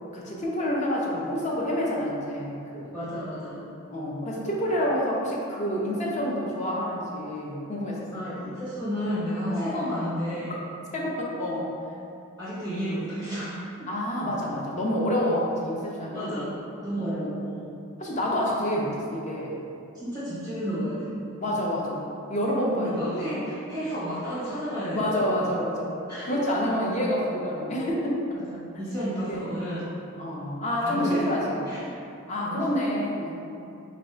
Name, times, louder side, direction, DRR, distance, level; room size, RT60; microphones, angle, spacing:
voice 1, 0.1-2.9 3.9-8.5 9.5-9.9 10.9-11.7 13.9-16.5 17.0-17.3 18.0-19.6 21.4-22.0 22.3-23.4 24.9-28.2 29.1-29.5 30.2-31.6 32.3-33.5, equal, 35° left, -3 dB, 0.6 m, -28 dB
voice 2, 2.9-3.6 8.1-10.6 12.4-13.9 16.1-17.7 19.9-21.1 22.8-25.2 26.1-26.5 28.3-29.9 30.8-32.0 32.4-32.7, equal, 15° left, -14 dB, 1.1 m, -32 dB
3.1 x 2.6 x 4.4 m, 2.6 s
head